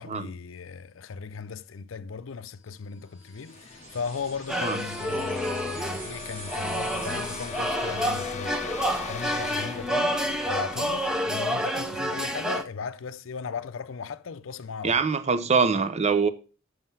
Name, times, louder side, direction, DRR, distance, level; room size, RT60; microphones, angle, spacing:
voice 1, 0.0-15.0, left 5 dB, 70° left, 0.5 m, -37 dB
sound 1, 2.8-12.6, left 5 dB, 35° left, 0.8 m, -41 dB
sound 2, 3.2-8.0, right 4 dB, 70° right, 2.2 m, -45 dB
sound 3, 4.5-12.6, equal, 5° right, 0.7 m, -29 dB
voice 2, 14.8-16.3, right 5 dB, 35° right, 0.6 m, -23 dB
7.7 x 5.6 x 5.6 m
head